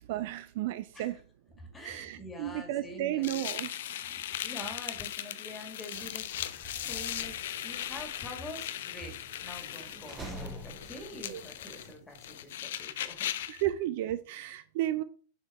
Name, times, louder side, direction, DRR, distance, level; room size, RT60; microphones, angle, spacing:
voice 1, 0.1-1.2 1.8-3.9 11.3-11.4 13.5-15.0, right 14 dB, 50° right, 0.4 m, -33 dB
voice 2, 1.6-3.4 4.1-7.3 7.6-9.2 9.4-13.3, left 1 dB, 15° left, 2.0 m, -46 dB
sound 1, 3.2-13.6, left 11 dB, 55° left, 0.4 m, -38 dB
sound 2, 5.9-11.9, right 1 dB, 15° right, 1.2 m, -48 dB
6.4 x 4.4 x 4.2 m
figure-of-eight pair, 90°, 0 cm